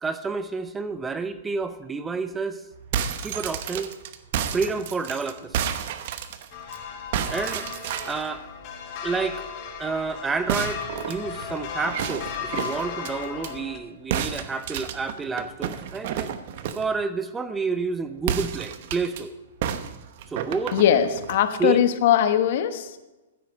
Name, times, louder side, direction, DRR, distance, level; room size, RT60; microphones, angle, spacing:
voice 1, 0.0-2.6 3.2-3.9 4.5-5.6 7.3-7.7 8.0-8.5 9.0-9.5 9.8-16.3 16.8-19.4 20.3-20.8 21.6-21.9, right 4 dB, 10° right, 11 dB, 0.6 m, -29 dB
sound 1, 2.7-6.8 7.1-8.3 10.5-13.5 14.1-16.9 18.2-19.2 19.6-21.4, right 9 dB, 50° right, 1.0 m, -31 dB
sound 2, 6.5-13.8, left 7 dB, 40° left, 2.1 m, -36 dB
voice 2, 20.7-23.0, left 10 dB, 55° left, 10 dB, 1.1 m, -20 dB
14.0 x 8.5 x 5.2 m, 1.1 s
hypercardioid pair, 140°, 0 cm